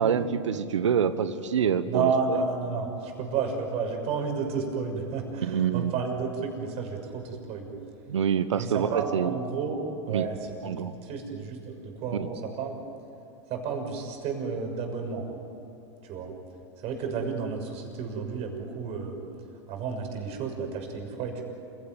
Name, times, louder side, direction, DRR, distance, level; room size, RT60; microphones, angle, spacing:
voice 1, 0.0-2.4 5.4-6.0 8.1-9.3 10.1-10.3 10.6-11.0 12.1-12.3, right 7 dB, 85° right, 12 dB, 1.2 m, -26 dB
voice 2, 1.9-7.7 8.5-9.8 10.0-10.4 10.6-12.8 13.5-15.3 16.0-16.3 16.8-19.2 19.7-21.4, right 5 dB, 45° right, 3 dB, 6.5 m, -31 dB
28.5 x 17.0 x 9.3 m, 2.8 s
hypercardioid pair, 110°, 15 cm